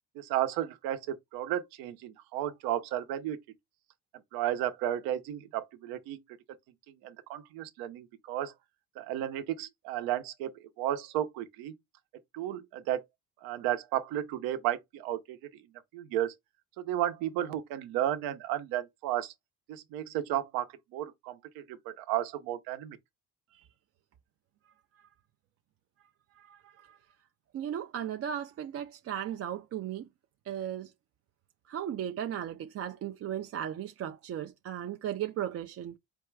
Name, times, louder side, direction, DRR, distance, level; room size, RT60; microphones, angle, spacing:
voice 1, 0.1-3.4 4.3-6.2 6.9-8.5 9.0-10.5 10.8-11.7 12.3-13.0 13.4-15.5 15.9-16.3 16.8-19.3 19.7-23.0, right 12 dB, 75° right, 0.9 m, -33 dB
voice 2, 26.4-27.0 27.5-30.1 30.5-30.9 31.7-36.0, right 10 dB, 40° right, 0.5 m, -36 dB
4.5 x 2.3 x 4.6 m
supercardioid pair, 85°, 36 cm